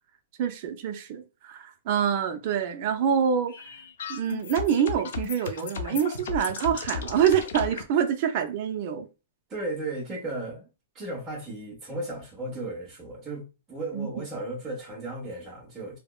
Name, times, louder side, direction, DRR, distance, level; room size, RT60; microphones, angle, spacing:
voice 1, 0.4-3.5 4.1-9.1 13.9-14.1, right 8 dB, 45° right, 0.5 m, -26 dB
sound 1, 3.5-7.8, left 7 dB, 70° left, 0.5 m, -35 dB
voice 2, 9.5-10.7 10.9-16.0, right 2 dB, 20° right, 1.2 m, -35 dB
3.4 x 2.0 x 2.3 m
hypercardioid pair, 145°, 0 cm